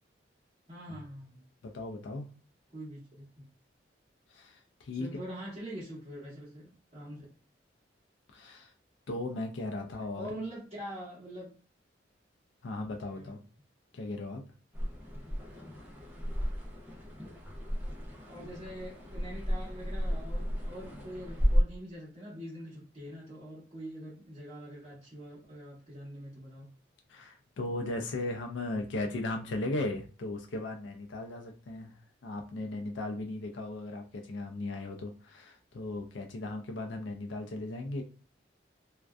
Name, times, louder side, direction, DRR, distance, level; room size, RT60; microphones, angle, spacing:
voice 1, 0.7-1.5 2.7-3.5 4.9-7.3 9.8-9.9 10.2-11.5 13.1-13.3 18.3-26.7, equal, 30° right, -9 dB, 1.0 m, -44 dB
voice 2, 1.6-2.3 4.3-5.2 8.3-8.7 9.1-10.3 12.6-13.4 13.9-14.4 27.1-38.0, left 2 dB, 75° left, 3 dB, 0.4 m, -37 dB
sound 1, 14.7-21.6, equal, 10° right, 0.6 m, -33 dB
2.5 x 2.2 x 2.2 m, 0.38 s
head